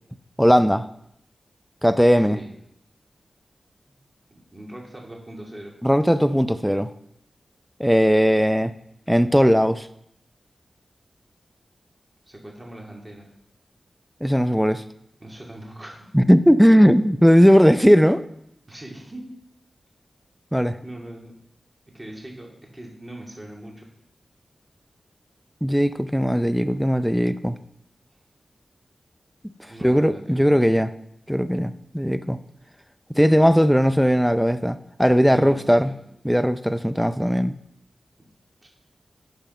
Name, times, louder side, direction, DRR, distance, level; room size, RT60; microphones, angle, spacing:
voice 1, 0.4-0.9 1.8-2.4 5.8-6.9 7.8-8.7 9.1-9.9 14.2-14.8 16.1-18.2 20.5-20.8 25.6-27.6 29.8-30.9 31.3-32.4 33.2-35.9 36.2-37.6, equal, ahead, 12 dB, 0.4 m, -18 dB
voice 2, 4.3-5.7 12.3-13.3 15.2-16.1 18.7-19.3 20.8-21.3 21.9-23.9 29.7-30.6 35.3-36.0 38.6-38.7, right 1 dB, 20° right, -2 dB, 2.5 m, -41 dB
10.0 x 6.3 x 5.5 m, 0.76 s
wide cardioid pair, 90°, 0 cm